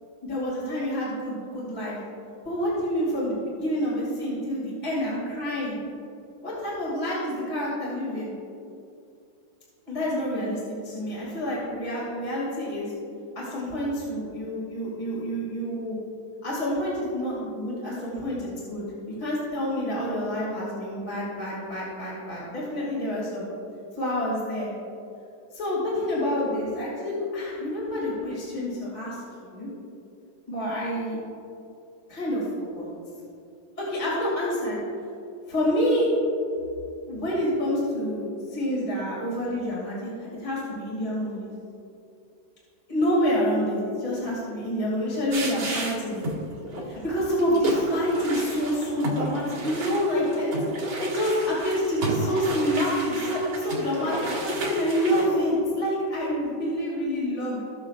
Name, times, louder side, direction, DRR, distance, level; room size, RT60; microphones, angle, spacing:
voice 1, 0.2-2.0 2.4-5.8 6.4-8.3 9.9-12.9 13.3-16.0 16.4-23.5 24.0-24.7 25.5-29.7 30.5-31.2 32.1-32.9 33.8-34.8 35.5-36.1 37.1-41.5 42.9-46.2 46.8-50.5 51.0-57.6, equal, 20° left, -7 dB, 2.5 m, -28 dB
sound 1, 45.3-46.4 46.6-46.8 47.4-55.3, right 1 dB, 80° right, 2.7 m, -32 dB
18.5 x 6.8 x 2.5 m, 2.6 s
omnidirectional pair, 2.2 m